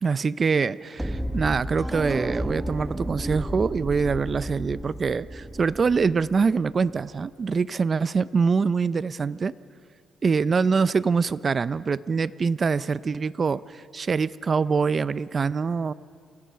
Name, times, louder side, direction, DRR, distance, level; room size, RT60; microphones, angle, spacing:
voice 1, 0.0-9.5 10.2-15.9, right 5 dB, 40° right, 17 dB, 0.5 m, -24 dB
sound 1, 1.0-7.0, equal, 5° right, 0.8 m, -32 dB
28.0 x 16.5 x 5.7 m, 2.3 s
cardioid pair, 90°, 0 cm